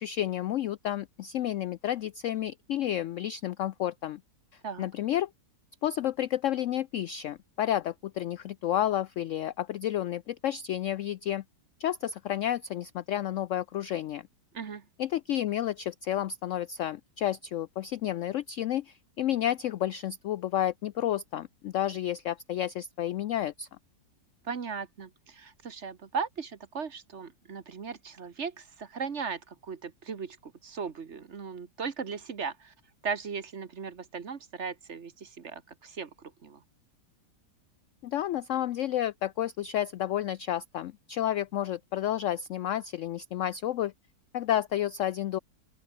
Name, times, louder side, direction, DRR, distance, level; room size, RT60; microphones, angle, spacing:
voice 1, 0.0-4.2 4.5-5.3 5.8-11.4 11.8-14.3 15.0-23.7 38.0-43.9 44.3-45.4, left 11 dB, 85° left, 0.6 m, -31 dB
voice 2, 24.4-32.7 33.0-36.6, right 5 dB, 45° right, 1.4 m, -37 dB
open air
omnidirectional pair, 1.9 m